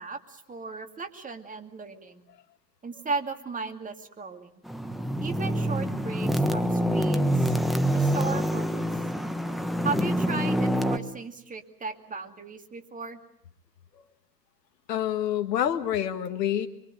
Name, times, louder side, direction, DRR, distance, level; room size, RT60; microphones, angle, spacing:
voice 1, 0.0-2.2 2.8-4.6 5.2-7.5 7.9-8.9 9.8-13.2, right 4 dB, 15° right, 6 dB, 2.4 m, -36 dB
sound 1, 4.7-11.0, equal, ahead, 1.4 m, -26 dB
voice 2, 14.9-16.7, left 10 dB, 75° left, 7 dB, 1.8 m, -27 dB
24.5 x 23.5 x 7.9 m, 0.74 s
hypercardioid pair, 100°, 50 cm